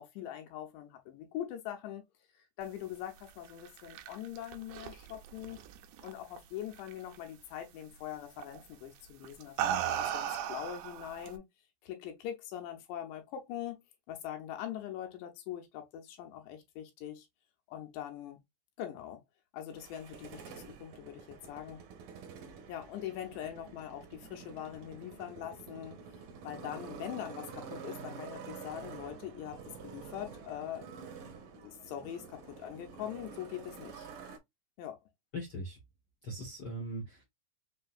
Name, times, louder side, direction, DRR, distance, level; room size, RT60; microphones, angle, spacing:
voice 1, 0.0-2.0 2.6-5.6 6.0-11.4 11.8-13.8 14.1-17.3 17.7-18.4 18.8-19.2 19.5-21.8 22.7-26.0 26.4-31.0 31.5-34.1 34.8-35.0, left 11 dB, 80° left, 3.1 m, -42 dB
sound 1, 3.5-6.4 6.7-7.2 8.4-8.6 9.2-11.4, right 10 dB, 80° right, 2.2 m, -36 dB
Motorcycle, 19.7-34.4, right 6 dB, 65° right, 2.3 m, -48 dB
voice 2, 35.3-35.8 36.2-37.2, right 1 dB, 60° left, 1.1 m, -40 dB
6.7 x 2.8 x 2.5 m
omnidirectional pair, 5.0 m